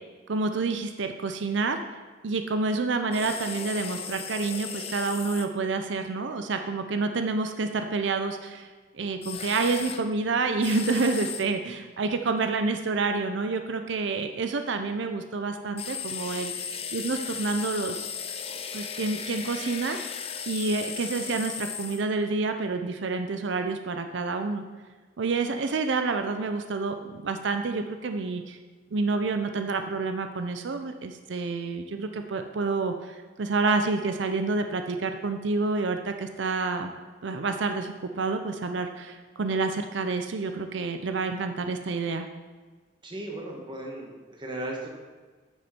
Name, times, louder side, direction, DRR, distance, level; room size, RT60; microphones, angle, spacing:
voice 1, 0.3-1.8 2.2-8.7 8.9-16.5 16.9-18.1 18.7-20.0 20.5-24.6 25.2-28.6 28.9-42.3, right 3 dB, 85° right, 7 dB, 0.6 m, -28 dB
sound 1, 3.1-5.5 9.2-10.0 10.6-11.4 15.8-22.0, left 7 dB, 30° left, 0.5 m, -36 dB
voice 2, 43.0-44.9, right 1 dB, 25° right, 0 dB, 1.3 m, -36 dB
9.5 x 6.4 x 4.4 m, 1.4 s
head